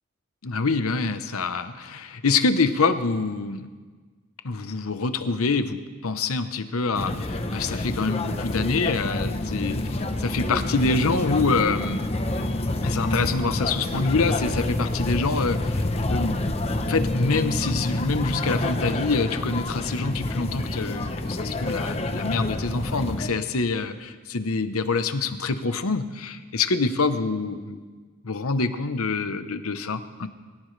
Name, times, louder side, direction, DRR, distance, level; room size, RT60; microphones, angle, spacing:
voice 1, 0.4-3.7 4.4-12.0 12.8-16.4 16.8-27.8 28.2-30.3, left 4 dB, 85° left, 10 dB, 0.9 m, -26 dB
sound 1, 6.9-23.3, left 1 dB, 30° left, 0.8 m, -28 dB
22.5 x 17.0 x 3.3 m, 1.4 s
head